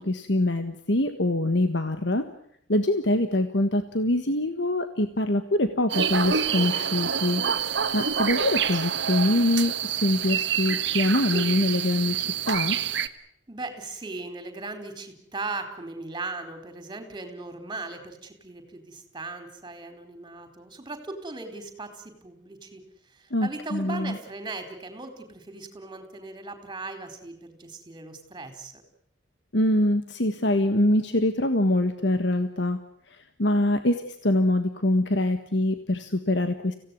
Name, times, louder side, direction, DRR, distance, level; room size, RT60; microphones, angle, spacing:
voice 1, 0.0-2.2 2.7-7.4 7.9-12.8 23.3-24.2 29.5-32.8 33.4-36.7, left 1 dB, 65° left, 8 dB, 1.5 m, -24 dB
sound 1, 5.9-13.1, right 7 dB, 65° right, 1.5 m, -27 dB
voice 2, 13.5-22.8 23.1-28.8, right 3 dB, 25° right, 8 dB, 4.4 m, -38 dB
26.0 x 17.0 x 9.5 m, 0.71 s
head